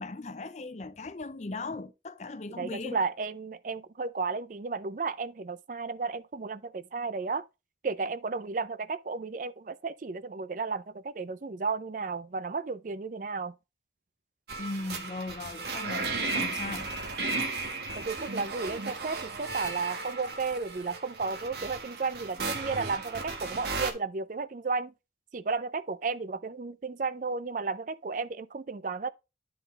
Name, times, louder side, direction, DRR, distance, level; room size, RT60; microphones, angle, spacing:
voice 1, 0.0-3.0 14.6-16.9, left 2 dB, 40° left, 0.6 m, -38 dB
voice 2, 2.6-7.4 7.8-13.5 18.0-24.9 25.3-29.1, right 4 dB, 45° right, 0.4 m, -33 dB
sound 1, 14.5-23.9, right 3 dB, 65° right, 1.4 m, -35 dB
10.0 x 3.9 x 4.0 m
head